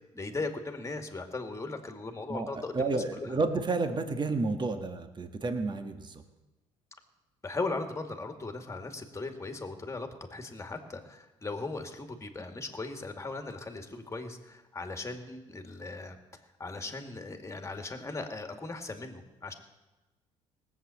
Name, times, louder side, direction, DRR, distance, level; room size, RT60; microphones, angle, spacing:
voice 1, 0.1-3.3 7.4-16.2 16.6-19.5, left 3 dB, 20° left, 6 dB, 2.2 m, -38 dB
voice 2, 2.3-6.2, right 3 dB, 35° right, 7 dB, 1.6 m, -31 dB
18.0 x 7.7 x 8.4 m, 1.1 s
supercardioid pair, 70°, 13 cm